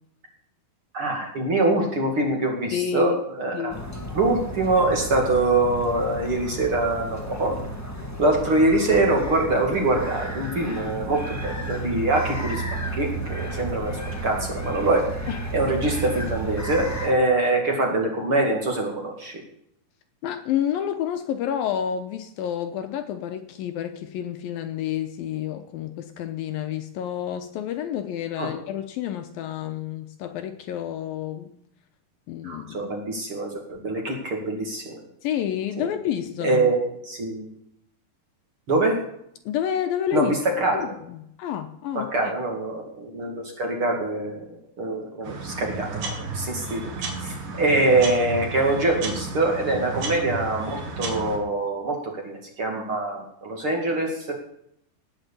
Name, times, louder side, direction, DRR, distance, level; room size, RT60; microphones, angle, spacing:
voice 1, 0.9-3.7 4.1-7.6 8.2-15.2 15.5-19.4 28.4-28.5 32.4-35.0 35.8-35.9 36.4-36.8 37.0-37.5 38.7-39.0 40.1-40.8 41.9-44.4 44.8-46.9 47.2-54.3, right 2 dB, 40° right, 1 dB, 2.6 m, -24 dB
voice 2, 2.7-3.2 3.5-3.8 15.3-15.4 20.2-31.5 32.3-33.0 35.2-36.6 39.5-42.3, left 10 dB, 75° left, 8 dB, 2.5 m, -29 dB
sound 1, 3.7-17.1, right 1 dB, 25° left, 0.3 m, -32 dB
sound 2, 45.2-51.4, right 3 dB, 60° right, 3.9 m, -33 dB
18.0 x 6.4 x 8.4 m, 0.73 s
omnidirectional pair, 4.6 m